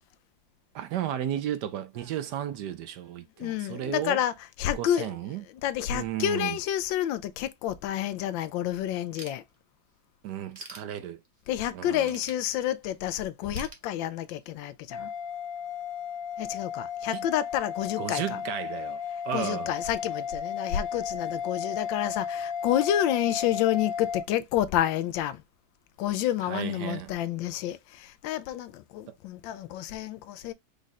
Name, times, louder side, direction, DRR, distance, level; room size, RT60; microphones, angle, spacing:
voice 1, 0.7-4.2 4.7-5.4 5.9-6.6 10.2-11.2 11.7-12.1 17.1-17.2 18.0-19.0 19.2-19.7 26.4-27.1, right 11 dB, 70° right, 1.1 m, -34 dB
voice 2, 3.4-5.2 5.5-9.4 11.5-15.1 16.4-18.4 19.3-25.4 26.0-30.5, left 11 dB, 85° left, 1.3 m, -29 dB
Ratchet pawl / Tools, 9.1-9.9 10.3-11.5 12.0-13.0 13.5-14.5, right 2 dB, 25° right, 0.9 m, -46 dB
sound 1, 14.9-24.2, left 7 dB, 65° left, 0.9 m, -34 dB
5.2 x 2.4 x 4.0 m
omnidirectional pair, 2.0 m